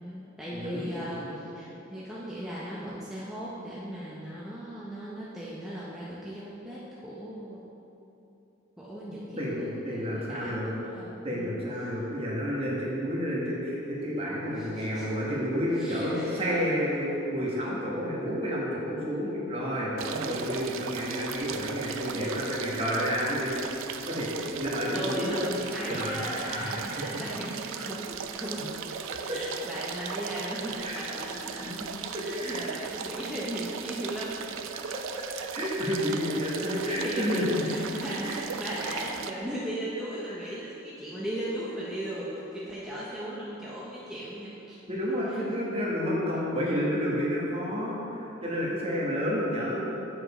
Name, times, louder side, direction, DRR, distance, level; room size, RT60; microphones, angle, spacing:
voice 1, 0.0-7.6 8.8-11.5 14.5-15.1 15.7-16.6 24.9-28.8 29.2-31.8 32.2-34.5 35.3-35.4 36.6-44.8 45.1-45.4, equal, 5° right, -8 dB, 0.6 m, -37 dB
voice 2, 0.5-1.4 9.1-10.7 11.2-23.5 24.1-25.4 25.8-27.2 29.3-29.4 30.0-30.1 30.8-31.0 31.6-32.7 34.9-35.0 35.5-37.7 38.2-38.4 40.3-40.5 44.9-49.8, equal, 30° right, -5 dB, 1.3 m, -30 dB
sound 1, 20.0-39.3, right 7 dB, 75° right, 0.4 m, -37 dB
7.5 x 5.1 x 4.8 m, 2.9 s
head